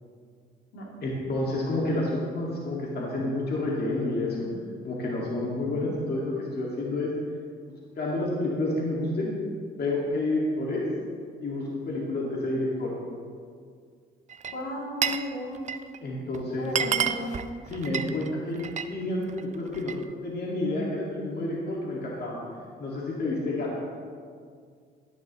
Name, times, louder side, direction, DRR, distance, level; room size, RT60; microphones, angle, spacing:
voice 1, 1.0-4.5 4.8-7.1 8.0-9.4 9.8-10.8 11.4-12.9 16.0-16.7 17.7-19.9 20.2-22.4 22.8-23.7, left 2 dB, 55° left, -4 dB, 2.0 m, -29 dB
Glass, 14.3-15.3 15.6-16.0 16.3-16.4 16.7-18.9 19.3-20.0, right 7 dB, 35° right, 0.5 m, -30 dB
voice 2, 14.5-15.6 16.6-17.3, left 1 dB, 80° left, -4 dB, 2.7 m, -35 dB
12.0 x 10.5 x 3.1 m, 2.1 s
cardioid pair, 90°, 20 cm